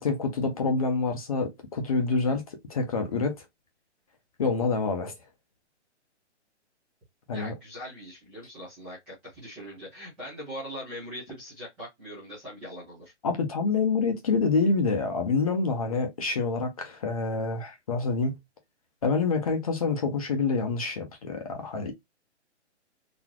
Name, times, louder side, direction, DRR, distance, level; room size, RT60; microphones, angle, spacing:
voice 1, 0.0-3.3 4.4-5.1 7.3-7.5 13.2-18.4 19.0-21.9, left 4 dB, 30° left, 0.9 m, -27 dB
voice 2, 7.3-13.1, equal, 5° right, 0.7 m, -41 dB
4.1 x 2.8 x 2.9 m
hypercardioid pair, 170°, 36 cm